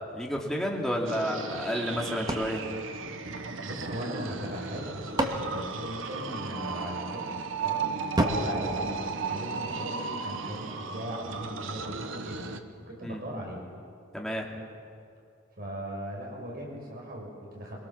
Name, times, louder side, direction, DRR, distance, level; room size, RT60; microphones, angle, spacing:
voice 1, 0.1-2.6 13.0-13.2 14.1-14.5, equal, ahead, -2 dB, 2.9 m, -30 dB
sound 1, 1.1-12.6, right 4 dB, 80° right, 1.3 m, -35 dB
sound 2, 2.3-3.8 4.7-6.7 8.2-9.8, right 1 dB, 20° right, 1.9 m, -33 dB
voice 2, 3.6-7.2 7.6-7.9 8.2-12.5 12.9-13.6 15.6-17.8, equal, 50° right, -1 dB, 6.1 m, -38 dB
23.5 x 23.0 x 7.3 m, 2.5 s
head